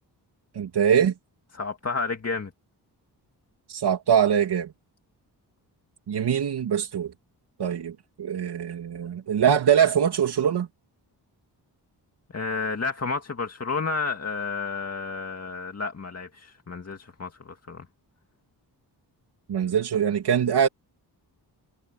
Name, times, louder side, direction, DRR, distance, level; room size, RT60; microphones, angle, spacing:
voice 1, 0.5-1.1 3.7-4.7 6.1-7.1 7.6-10.7 19.5-20.7, right 8 dB, 70° right, 2.7 m, -23 dB
voice 2, 1.5-2.5 12.3-17.8, left 4 dB, 35° left, 2.2 m, -31 dB
cardioid pair, 90°, 41 cm